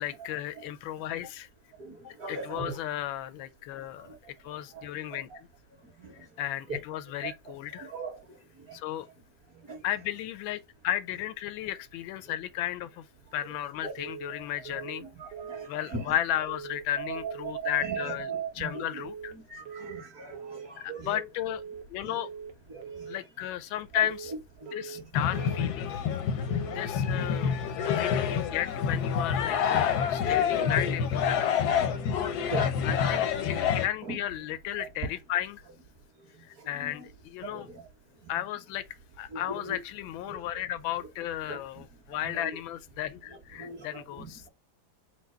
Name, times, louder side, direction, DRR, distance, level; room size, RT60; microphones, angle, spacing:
voice 1, 0.0-1.5 2.0-4.1 4.4-5.3 6.4-7.9 8.7-9.1 9.8-13.0 13.3-15.0 15.7-18.3 18.6-19.3 20.8-21.6 21.9-22.3 23.1-24.3 24.7-25.9 26.7-27.6 27.8-31.8 32.8-35.6 36.4-37.7 38.3-38.8 39.2-44.2, left 12 dB, 85° left, 1.4 m, -34 dB
voice 2, 1.8-2.8 4.0-4.2 4.4-5.4 5.8-6.3 6.7-6.8 7.2-7.3 7.7-8.8 9.5-9.9 12.3-12.4 13.4-13.9 14.3-16.2 17.0-19.0 19.3-21.3 22.0-22.2 22.7-23.5 23.7-25.5 25.8-25.9 26.5-26.6 26.9-27.3 28.1-28.5 28.9-29.0 30.3-30.7 31.5-33.3 34.0-34.2 34.8-35.1 36.3-37.1 37.4-37.9 38.2-38.5 39.3-39.8 40.2-40.3 41.0-41.1 41.5-41.8 42.1-42.6 43.3-44.5, right 4 dB, 50° right, 2.0 m, -41 dB
sound 1, 14.0-14.4 14.7-15.1 15.3-15.7 16.5-16.9 17.2-17.6 17.8-18.2 19.0-19.4 19.7-20.1 20.3-20.7 21.5-21.9 22.2-22.6 22.8-23.2 24.0-24.4 24.7-25.1 25.3-25.7 26.5-26.9 27.2-27.6 27.8-28.2, right 6 dB, 70° right, 1.5 m, -42 dB
sound 2, 25.1-33.9, left 7 dB, 70° left, 1.0 m, -27 dB
4.7 x 2.2 x 4.3 m
omnidirectional pair, 2.1 m